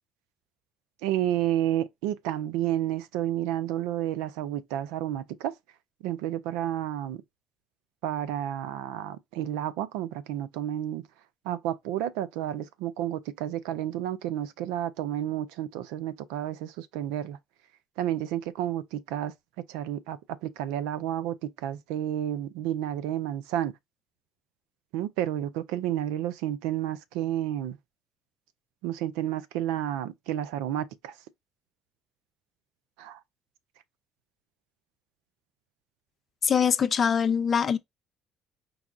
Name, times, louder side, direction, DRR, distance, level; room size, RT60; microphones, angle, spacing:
voice 1, 1.0-5.5 6.0-7.2 8.0-11.0 11.4-17.4 18.0-19.3 19.7-23.7 24.9-27.8 28.8-31.1 33.0-33.2, right 12 dB, 85° right, 0.4 m, -31 dB
voice 2, 36.4-37.8, left 7 dB, 45° left, 0.6 m, -23 dB
4.7 x 2.3 x 3.6 m
supercardioid pair, 65°, 0 cm